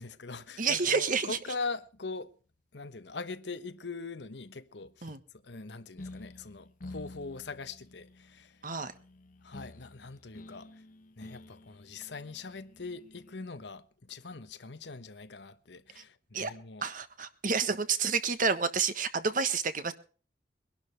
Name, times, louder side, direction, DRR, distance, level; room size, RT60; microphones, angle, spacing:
voice 1, 0.0-2.3 2.7-5.2 5.4-8.6 9.4-10.8 11.2-16.9, left 3 dB, 80° left, 1.1 m, -42 dB
voice 2, 0.6-1.4 5.0-5.2 8.6-8.9 16.0-16.1 16.3-16.5 16.8-19.9, right 5 dB, 50° right, 1.5 m, -29 dB
sound 1, 6.0-13.5, left 2 dB, 50° left, 1.2 m, -50 dB
23.0 x 11.5 x 3.3 m
head